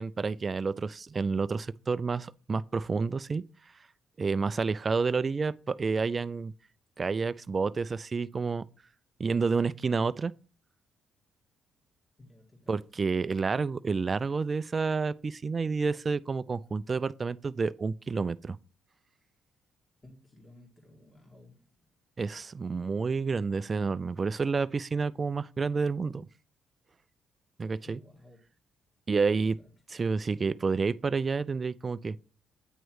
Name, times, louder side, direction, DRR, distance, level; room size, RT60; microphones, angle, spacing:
voice 1, 0.0-3.4 4.2-6.5 7.0-8.6 9.2-10.3 12.7-18.6 22.2-26.3 27.6-28.0 29.1-29.6 29.9-32.2, right 4 dB, 35° right, 0.3 m, -29 dB
voice 2, 12.2-13.0 20.0-21.7 27.9-28.4 29.3-29.7, left 1 dB, 30° left, 1.8 m, -55 dB
8.9 x 3.1 x 4.7 m
cardioid pair, 90°, 0 cm